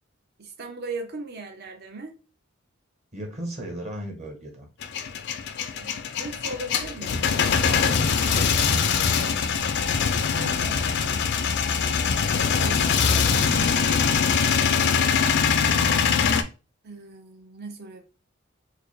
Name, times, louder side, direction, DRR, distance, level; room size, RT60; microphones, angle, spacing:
voice 1, 0.4-2.2 5.8-7.1 9.7-11.1 12.6-14.3 16.8-18.0, right 2 dB, 55° right, 0.7 m, -38 dB
voice 2, 3.1-4.7 7.6-9.2, right 1 dB, 35° right, 1.1 m, -36 dB
Male speech man speaking / Vehicle / Engine starting, 4.8-16.4, left 6 dB, 55° left, 0.4 m, -23 dB
4.7 x 2.1 x 3.1 m
head